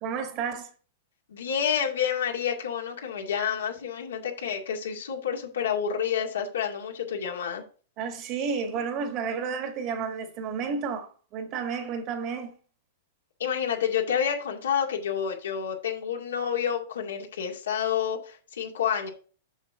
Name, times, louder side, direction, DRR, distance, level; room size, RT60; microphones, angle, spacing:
voice 1, 0.0-0.7 8.0-12.5, right 6 dB, 40° right, 1.6 m, -31 dB
voice 2, 1.3-7.6 13.4-19.1, left 8 dB, 85° left, 2.2 m, -29 dB
7.2 x 6.1 x 3.6 m
hypercardioid pair, 135°, 0 cm